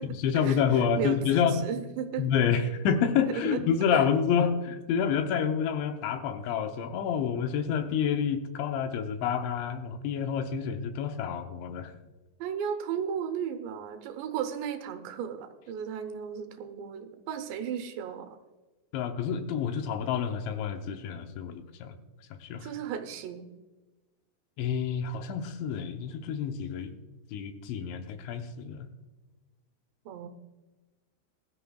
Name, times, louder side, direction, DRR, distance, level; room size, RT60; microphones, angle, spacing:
voice 1, 0.1-1.6 2.2-11.9 18.9-21.9 22.4-22.7 24.6-26.9 27.3-28.9, left 7 dB, 80° left, 6 dB, 3.1 m, -28 dB
voice 2, 1.0-2.2 3.2-3.6 3.9-4.0 12.4-18.4 22.6-23.5 30.1-30.3, right 8 dB, 80° right, 7 dB, 3.0 m, -35 dB
20.5 x 13.0 x 2.3 m, 1.2 s
omnidirectional pair, 5.3 m